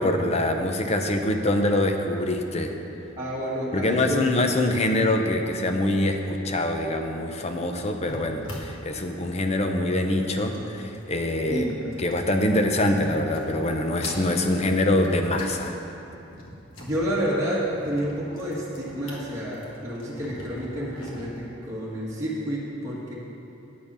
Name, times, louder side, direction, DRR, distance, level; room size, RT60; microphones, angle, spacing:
voice 1, 0.0-2.7 3.7-11.7 12.0-15.8, left 1 dB, 35° left, 4 dB, 0.7 m, -24 dB
voice 2, 3.2-4.2 11.5-11.9 16.8-23.1, equal, 15° right, -8 dB, 1.5 m, -29 dB
sound 1, 7.9-12.7 13.0-13.7 14.0-15.6 15.9-21.2, left 1 dB, 85° left, 1.7 m, -43 dB
9.5 x 8.5 x 5.4 m, 2.8 s
head